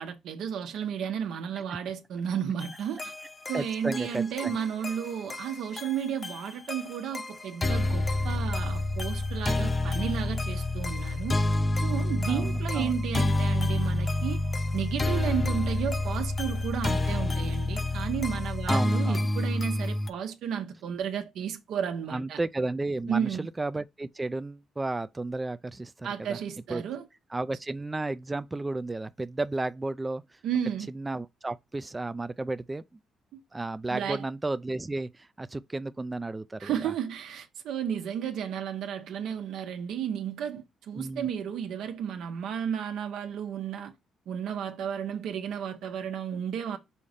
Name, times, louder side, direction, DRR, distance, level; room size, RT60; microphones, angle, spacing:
voice 1, 0.0-3.1 3.5-11.4 11.8-14.4 14.7-22.4 23.1-23.5 26.0-27.0 30.4-30.9 33.3-33.4 33.9-34.3 36.6-43.9 44.3-46.8, right 8 dB, 80° right, 1.1 m, -33 dB
sound 1, 2.6-20.1, left 2 dB, 25° left, 0.7 m, -29 dB
voice 2, 3.5-4.6 12.3-12.9 15.4-15.5 18.7-19.2 22.1-26.4 26.7-26.8 27.3-30.2 30.9-32.8 33.5-36.9 40.9-41.3, right 2 dB, 20° right, 0.4 m, -33 dB
5.6 x 4.1 x 5.0 m
cardioid pair, 90°, 0 cm